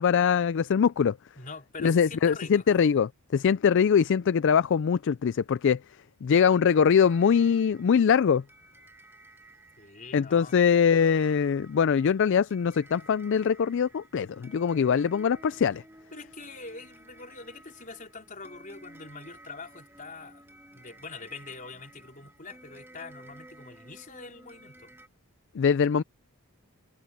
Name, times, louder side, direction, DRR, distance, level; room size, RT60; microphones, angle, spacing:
voice 1, 0.0-1.2 1.8-5.8 6.2-8.4 10.1-15.8 25.5-26.0, left 7 dB, 55° left, 0.4 m, -23 dB
voice 2, 1.3-2.7 9.8-10.6 16.1-20.5 20.7-25.0, left 4 dB, 35° left, 4.5 m, -44 dB
sound 1, 6.5-25.1, right 1 dB, 10° right, 2.0 m, -54 dB
head